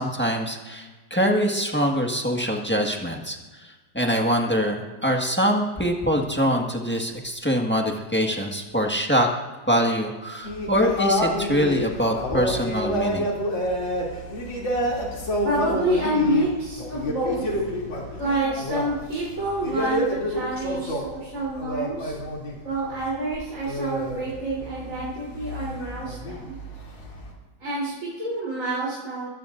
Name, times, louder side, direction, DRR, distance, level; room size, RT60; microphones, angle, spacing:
voice 1, 0.0-9.3 9.7-13.3, equal, 5° left, 1 dB, 1.4 m, -24 dB
sound 1, 10.4-22.6 22.8-27.3, left 1 dB, 75° left, 3.6 m, -28 dB
voice 2, 15.4-17.4 18.2-22.2 22.6-26.6 27.6-29.3, right 2 dB, 40° right, -8 dB, 4.1 m, -28 dB
23.0 x 17.5 x 2.6 m, 1.3 s
omnidirectional pair, 2.1 m